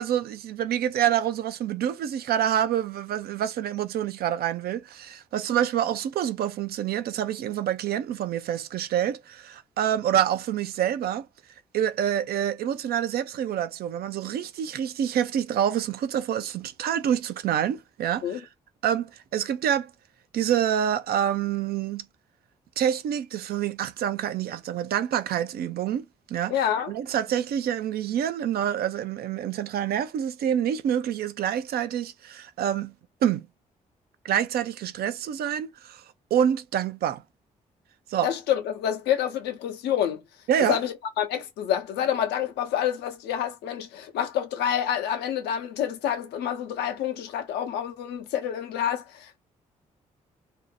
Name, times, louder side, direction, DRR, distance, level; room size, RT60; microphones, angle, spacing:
voice 1, 0.0-11.3 11.7-18.4 18.8-19.9 20.3-22.0 22.8-26.5 26.9-32.9 33.2-33.5 34.2-36.0 36.3-37.2 38.1-38.3 40.5-40.8, right 10 dB, 65° right, 0.5 m, -27 dB
voice 2, 26.5-26.9 38.2-40.2 40.6-49.4, left 10 dB, 75° left, 0.7 m, -28 dB
2.6 x 2.1 x 2.6 m
hypercardioid pair, 45°, 17 cm